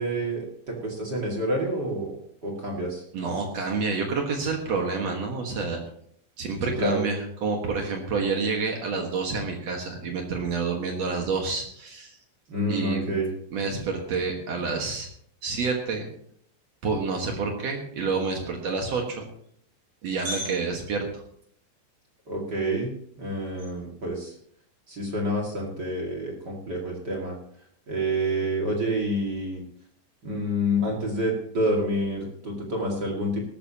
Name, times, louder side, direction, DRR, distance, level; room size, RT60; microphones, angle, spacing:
voice 1, 0.0-2.2 2.4-3.0 6.6-7.0 12.5-13.3 22.3-22.9 23.2-24.3 24.9-27.3 27.9-29.6 30.2-33.4, equal, 50° right, -1 dB, 1.2 m, -28 dB
voice 2, 3.1-5.8 6.4-12.2 12.7-13.1 13.5-15.1 15.4-16.1 16.8-19.3 20.0-21.2, right 4 dB, 70° right, 1 dB, 1.6 m, -28 dB
19.0 x 13.5 x 2.9 m, 0.66 s
omnidirectional pair, 5.6 m